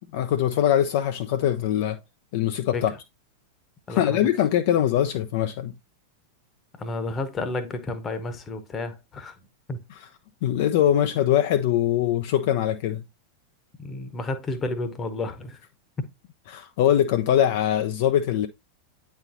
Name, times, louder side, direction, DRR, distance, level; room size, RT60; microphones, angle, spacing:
voice 1, 0.1-2.0 2.3-2.9 3.9-5.7 10.4-13.0 16.5-18.5, left 11 dB, 50° left, 0.4 m, -22 dB
voice 2, 3.9-4.3 6.7-9.3 9.7-9.8 13.8-15.6, left 2 dB, 20° left, 0.9 m, -31 dB
8.8 x 4.1 x 2.6 m
figure-of-eight pair, 90°, 0 cm